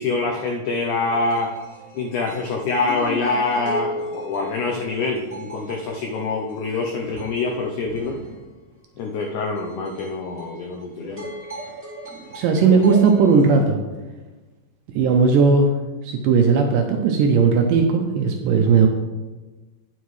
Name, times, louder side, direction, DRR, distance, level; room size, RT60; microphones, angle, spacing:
voice 1, 0.0-1.6 1.9-8.2 9.0-11.3, left 3 dB, 85° left, 1 dB, 1.7 m, -25 dB
sound 1, 1.0-8.4 9.2-13.6, right 1 dB, 5° right, 1.1 m, -36 dB
voice 2, 12.3-13.8 15.0-15.7 16.0-18.9, right 5 dB, 80° right, 3 dB, 2.0 m, -17 dB
9.2 x 8.2 x 3.2 m, 1.2 s
omnidirectional pair, 4.4 m